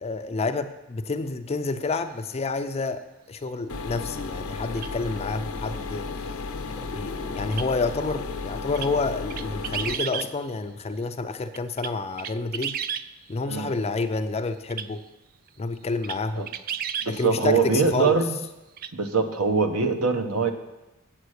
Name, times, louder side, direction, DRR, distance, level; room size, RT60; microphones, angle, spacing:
voice 1, 0.0-6.1 6.8-12.8 13.3-15.0 15.6-16.5 17.1-18.2, left 3 dB, 30° left, 8 dB, 0.4 m, -29 dB
sound 1, 3.7-9.9, left 4 dB, 85° left, 0.8 m, -34 dB
sound 2, 4.8-4.9 7.5-7.7 8.8-8.9 9.3-10.3 11.5-13.1 14.7-14.9 15.5-15.6 16.0-16.2 16.5-17.1 18.8-18.9, right 8 dB, 40° right, 0.3 m, -32 dB
voice 2, 17.0-18.4 18.9-20.5, right 4 dB, 75° right, 7 dB, 1.0 m, -23 dB
8.0 x 7.6 x 6.4 m, 1.0 s
head